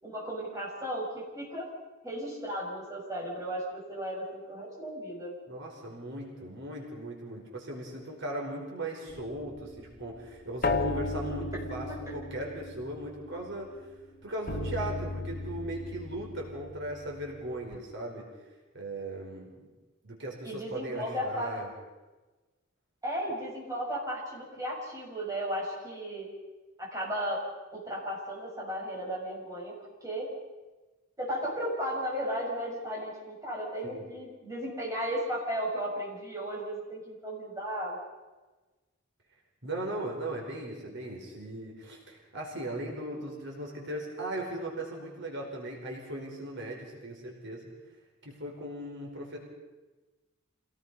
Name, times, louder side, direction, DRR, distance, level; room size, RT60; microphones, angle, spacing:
voice 1, 0.0-1.7 2.0-5.3 20.4-21.6 23.0-26.3 26.8-27.4 27.7-29.7 30.0-30.3 31.2-38.0, equal, 15° right, -4 dB, 6.7 m, -35 dB
voice 2, 5.5-13.7 14.2-18.3 18.7-19.7 20.0-21.7 33.8-34.1 39.6-47.7 48.2-49.4, right 1 dB, 60° right, 0 dB, 4.7 m, -38 dB
sound 1, 9.1-13.9 14.5-17.8, left 2 dB, 45° left, 1.4 m, -36 dB
27.0 x 18.5 x 5.5 m, 1.2 s
head